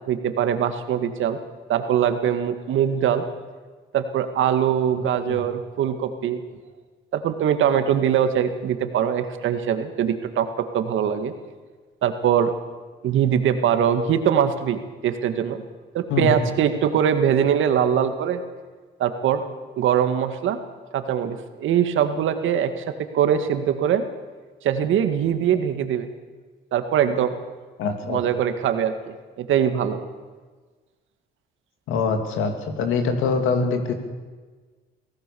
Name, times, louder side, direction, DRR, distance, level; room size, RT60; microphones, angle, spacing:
voice 1, 0.1-1.4 1.7-3.3 3.9-6.4 7.1-11.3 12.0-12.5 13.0-15.6 15.9-18.4 19.0-19.4 19.8-20.6 20.9-22.8 23.1-24.0 24.6-26.1 26.7-27.4 28.1-28.9 29.4-30.0, right 9 dB, 80° right, 8 dB, 2.0 m, -22 dB
voice 2, 4.9-5.4 16.1-16.4 27.8-28.2 31.9-33.9, left 4 dB, 90° left, 6 dB, 2.8 m, -24 dB
24.0 x 17.0 x 7.1 m, 1.4 s
cardioid pair, 90°, 20 cm